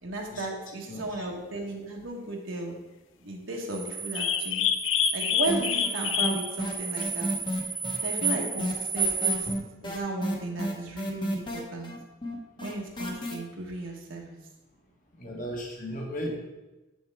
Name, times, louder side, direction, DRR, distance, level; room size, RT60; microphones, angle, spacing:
voice 1, 0.0-2.8 3.2-4.6 5.1-7.3 8.0-9.5 9.8-11.9 12.6-14.4, right 2 dB, 80° right, -1 dB, 1.3 m, -35 dB
voice 2, 0.9-1.3 7.8-7.9 15.2-16.3, equal, 45° left, 0 dB, 1.5 m, -36 dB
sound 1, 3.7-9.5, right 5 dB, 15° right, 0.5 m, -32 dB
sound 2, 4.2-6.5 7.0-7.1, left 9 dB, 75° left, 0.4 m, -27 dB
sound 3, 5.5-6.0 6.2-13.3, equal, 25° left, 1.0 m, -32 dB
7.2 x 6.2 x 3.5 m, 1.0 s
head